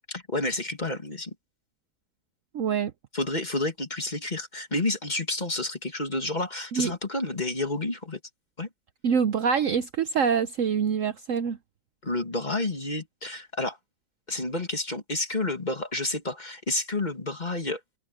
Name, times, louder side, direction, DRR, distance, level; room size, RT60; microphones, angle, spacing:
voice 1, 0.1-1.3 3.1-8.2 8.6-8.7 12.0-13.8 14.3-17.8, left 2 dB, 25° left, 2.4 m, -30 dB
voice 2, 2.5-2.9 6.7-6.9 9.0-11.6, right 6 dB, 60° right, 1.0 m, -25 dB
omnidirectional pair, 1.7 m